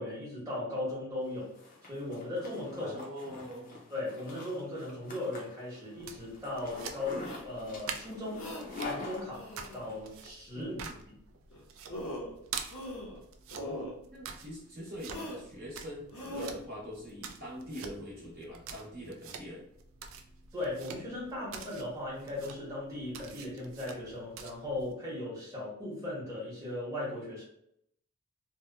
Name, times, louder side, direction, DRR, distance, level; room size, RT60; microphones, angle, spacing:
voice 1, 0.0-1.6 1.8-3.0 3.9-10.8 20.5-27.4, left 1 dB, 15° right, -7 dB, 0.9 m, -38 dB
Zipper (clothing), 1.3-10.0, left 3 dB, 40° left, 0.5 m, -45 dB
voice 2, 2.8-3.8 10.5-11.0 13.5-19.7, equal, 45° right, -6 dB, 0.8 m, -44 dB
sound 1, 5.9-24.9, right 6 dB, 70° right, 0.3 m, -47 dB
sound 2, 7.2-7.4 8.3-8.6 9.3-9.8 11.5-11.6 11.9-12.3 12.7-13.2 13.5-14.0 15.1-15.4 16.1-16.5, equal, 75° left, 0.8 m, -40 dB
2.7 x 2.1 x 2.3 m, 0.73 s
head